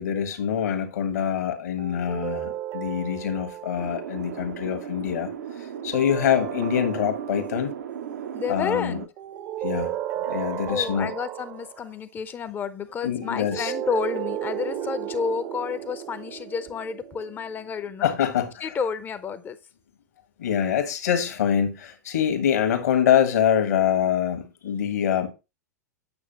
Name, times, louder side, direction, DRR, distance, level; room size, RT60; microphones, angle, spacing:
voice 1, 0.0-5.3 5.6-7.7 8.5-9.0 9.6-11.1 13.0-13.7 18.0-18.7 20.4-25.3, left 9 dB, 60° left, 1.5 m, -25 dB
sound 1, 1.8-4.2 5.9-7.8 9.2-11.9 13.2-17.7, right 11 dB, 35° right, 0.7 m, -34 dB
sound 2, 3.8-9.1, right 9 dB, 65° right, 0.7 m, -35 dB
voice 2, 8.3-9.1 10.7-18.1 18.6-19.6, left 6 dB, 20° left, 0.7 m, -30 dB
8.7 x 6.6 x 2.9 m
figure-of-eight pair, 95°, 9 cm